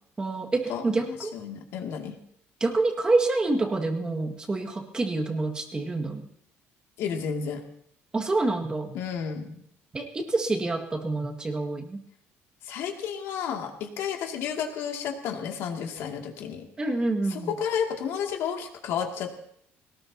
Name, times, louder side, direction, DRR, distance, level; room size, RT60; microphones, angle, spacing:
voice 1, 0.2-1.4 2.6-6.3 8.1-9.0 9.9-12.0 16.8-17.5, right 2 dB, 20° right, 3 dB, 2.0 m, -27 dB
voice 2, 0.7-2.2 7.0-7.6 8.9-9.6 12.7-16.7 17.3-19.3, left 7 dB, 70° left, 2 dB, 2.5 m, -32 dB
21.5 x 19.0 x 2.9 m, 0.69 s
cardioid pair, 145°, 5 cm